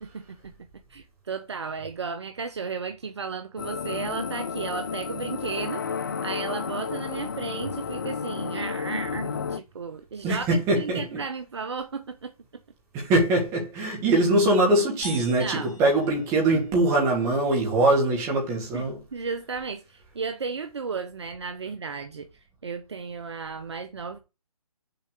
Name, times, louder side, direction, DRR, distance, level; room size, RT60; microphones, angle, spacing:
voice 1, 0.0-0.5 0.9-5.8 6.2-12.3 15.4-15.7 18.7-24.2, right 5 dB, 45° right, 0.8 m, -34 dB
sound 1, 3.6-9.6, left 6 dB, 35° left, 0.5 m, -32 dB
voice 2, 10.2-11.1 12.9-19.0, right 2 dB, 15° right, 2.5 m, -22 dB
sound 2, 15.0-17.0, equal, 10° left, 3.1 m, -43 dB
6.8 x 4.2 x 6.6 m
figure-of-eight pair, 145°, 20 cm